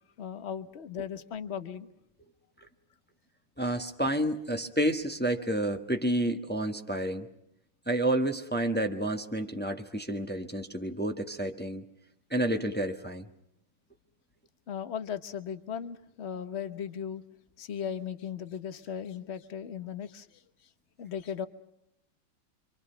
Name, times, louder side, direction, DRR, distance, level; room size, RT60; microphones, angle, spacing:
voice 1, 0.2-1.9 14.7-17.2 17.6-20.3 21.0-21.5, left 8 dB, 40° left, 11 dB, 1.0 m, -37 dB
voice 2, 3.6-7.3 7.9-11.9 12.3-13.3, right 1 dB, 5° left, 4 dB, 0.9 m, -30 dB
26.5 x 26.0 x 5.7 m, 0.77 s
omnidirectional pair, 2.3 m